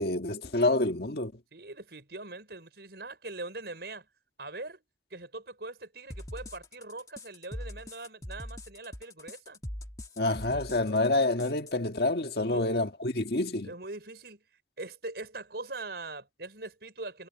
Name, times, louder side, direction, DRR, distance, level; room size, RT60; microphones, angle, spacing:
voice 1, 0.0-1.3 10.2-13.7, left 2 dB, 60° left, 1.6 m, -27 dB
voice 2, 1.5-4.1 4.4-4.8 5.1-9.6 12.5-12.8 13.6-14.4 14.8-17.3, right 2 dB, 65° right, 5.8 m, -42 dB
sound 1, 6.1-11.7, left 1 dB, 20° left, 1.4 m, -42 dB
head